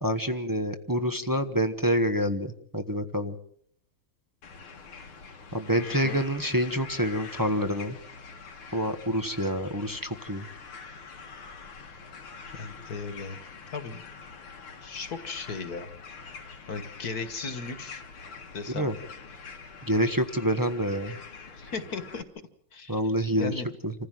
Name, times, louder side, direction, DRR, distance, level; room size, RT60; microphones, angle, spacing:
voice 1, 0.0-3.4 5.5-8.0 8.7-10.5 18.7-18.9 19.8-21.2 22.9-23.5 23.8-23.9, equal, 15° right, 5 dB, 0.7 m, -27 dB
sound 1, 4.4-22.2, left 5 dB, 85° left, 2.6 m, -45 dB
voice 2, 5.7-6.2 12.5-13.4 13.7-14.0 14.8-15.9 16.7-18.0 18.5-18.9 21.5-22.2 22.7-23.7, left 4 dB, 50° left, 10 dB, 1.9 m, -36 dB
27.5 x 15.0 x 7.6 m, 0.68 s
omnidirectional pair, 2.3 m